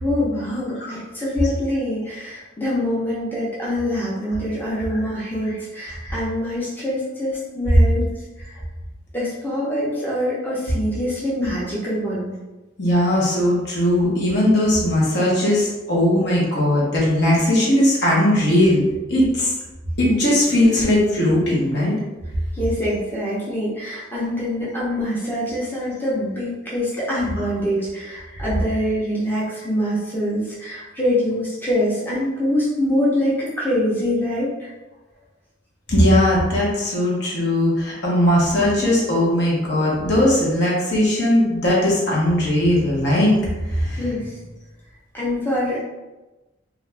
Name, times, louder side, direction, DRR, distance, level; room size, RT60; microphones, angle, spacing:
voice 1, 0.0-8.1 9.1-12.3 22.6-34.5 43.9-44.3 45.1-45.8, left 1 dB, 10° left, -8 dB, 0.6 m, -24 dB
voice 2, 12.8-18.8 19.1-19.5 20.0-21.9 28.3-28.4 35.9-43.3 43.7-44.0, left 1 dB, 60° left, -5 dB, 0.9 m, -19 dB
2.4 x 2.3 x 3.2 m, 1.1 s
head